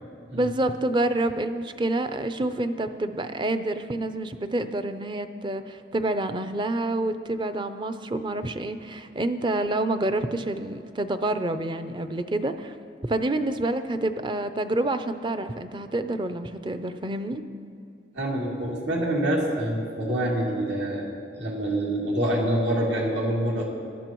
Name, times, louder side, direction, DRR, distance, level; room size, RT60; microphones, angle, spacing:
voice 1, 0.3-12.8 13.1-17.4, right 2 dB, 25° right, 10 dB, 0.5 m, -28 dB
voice 2, 18.1-21.1 21.4-23.7, right 1 dB, 75° right, -3 dB, 2.8 m, -26 dB
20.5 x 12.5 x 3.0 m, 2.5 s
head